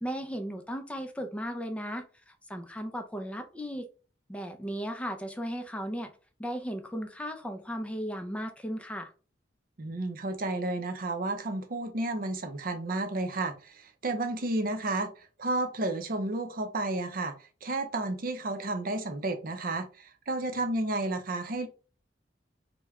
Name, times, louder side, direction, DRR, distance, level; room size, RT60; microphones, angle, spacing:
voice 1, 0.0-3.9 4.3-6.1 6.4-9.1, equal, 5° left, 5 dB, 0.4 m, -36 dB
voice 2, 9.8-17.3 17.6-21.7, right 2 dB, 55° right, 7 dB, 0.6 m, -32 dB
3.2 x 2.2 x 3.5 m, 0.35 s
head